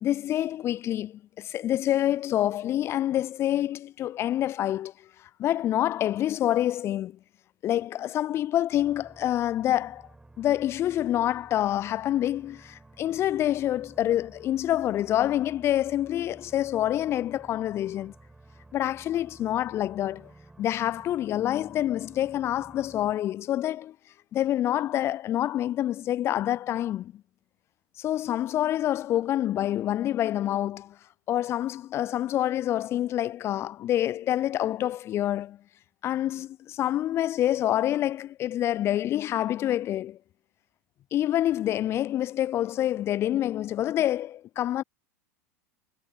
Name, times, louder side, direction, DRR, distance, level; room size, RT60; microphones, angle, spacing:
voice 1, 0.0-5.1 5.4-7.2 7.6-10.0 10.4-18.1 18.7-20.3 20.6-24.0 24.3-27.2 28.0-31.0 31.3-35.6 36.0-40.2 41.1-44.8, left 12 dB, 30° left, 0.4 m, -27 dB
sound 1, 8.7-23.1, right 2 dB, 10° right, 5.3 m, -53 dB
figure-of-eight pair, 80°, 8 cm